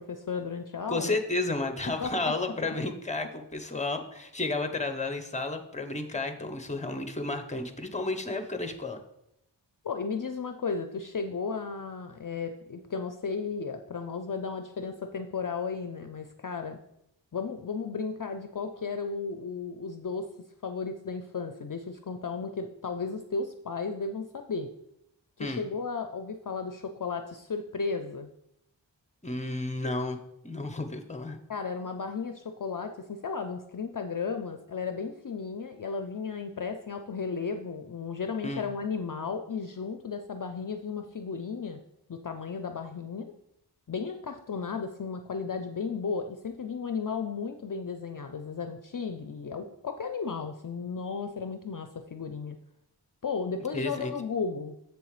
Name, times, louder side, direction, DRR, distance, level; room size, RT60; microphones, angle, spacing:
voice 1, 0.0-1.2 1.9-2.3 9.8-16.8 17.3-20.3 20.6-24.7 25.4-28.3 31.5-41.8 42.1-43.3 43.9-52.6 53.2-54.7, left 5 dB, 50° left, 7 dB, 0.5 m, -34 dB
voice 2, 0.9-9.0 25.4-25.6 29.2-30.2 30.4-31.4 38.4-38.6 53.7-54.1, left 2 dB, 15° left, 7 dB, 0.8 m, -32 dB
7.3 x 6.8 x 3.2 m, 0.80 s
wide cardioid pair, 45°, 44 cm